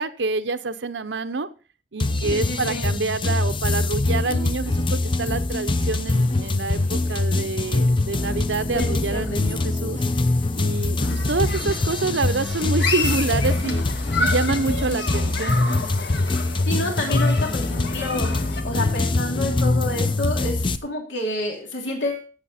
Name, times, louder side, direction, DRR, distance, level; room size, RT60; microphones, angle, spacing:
voice 1, 0.0-1.5 1.9-10.0 10.5-15.6, right 3 dB, 75° right, 10 dB, 0.8 m, -27 dB
sound 1, 2.0-20.8, left 2 dB, 30° left, 0.6 m, -23 dB
voice 2, 2.3-2.9 8.7-9.8 16.7-18.3 18.6-22.3, left 1 dB, 80° left, 0 dB, 3.1 m, -29 dB
sound 2, 5.8-14.2, left 1 dB, 45° left, 1.3 m, -43 dB
Human group actions, 11.0-18.6, left 3 dB, 65° left, 1.9 m, -31 dB
15.0 x 7.5 x 4.2 m, 0.36 s
head